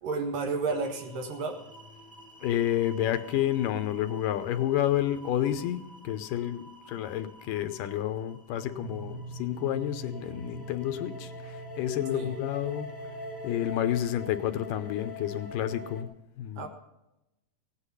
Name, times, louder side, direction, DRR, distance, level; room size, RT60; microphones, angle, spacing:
voice 1, 0.0-1.6 12.1-12.4 16.6-16.7, right 4 dB, 75° right, 4 dB, 3.2 m, -31 dB
sound 1, 0.6-16.0, left 1 dB, 15° left, 0.5 m, -46 dB
voice 2, 2.4-13.0 13.4-16.1 16.4-16.7, left 11 dB, 80° left, 10 dB, 2.3 m, -30 dB
sound 2, 8.7-13.8, right 3 dB, 55° right, 2.1 m, -44 dB
17.0 x 10.0 x 5.6 m, 0.91 s
omnidirectional pair, 4.0 m